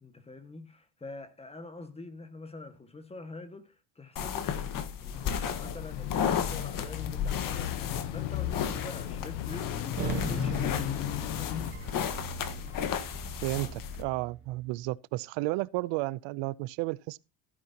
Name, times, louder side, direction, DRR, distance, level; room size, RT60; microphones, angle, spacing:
voice 1, 0.0-11.7, left 3 dB, 15° left, 1.7 m, -46 dB
sound 1, 4.2-14.0, left 8 dB, 50° left, 1.6 m, -34 dB
sound 2, 5.1-11.7, left 11 dB, 85° left, 1.1 m, -35 dB
sound 3, 10.0-14.5, right 5 dB, 30° right, 3.5 m, -40 dB
voice 2, 13.4-17.2, right 20 dB, 80° right, 0.6 m, -32 dB
15.0 x 9.7 x 2.9 m
cardioid pair, 135°, 43 cm